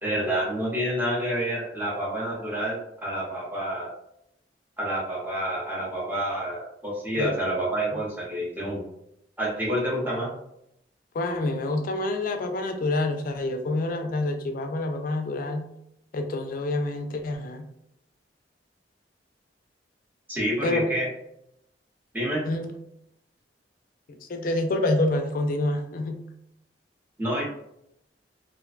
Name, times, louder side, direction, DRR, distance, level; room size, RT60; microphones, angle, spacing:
voice 1, 0.0-4.0 4.8-8.8 9.4-10.3 20.3-21.1 22.1-22.5 27.2-27.4, right 1 dB, 10° right, -4 dB, 0.7 m, -28 dB
voice 2, 11.1-15.7 16.1-17.7 20.6-20.9 22.4-22.7 24.1-26.2, left 2 dB, 50° left, 5 dB, 0.4 m, -27 dB
2.5 x 2.1 x 2.3 m, 0.78 s
head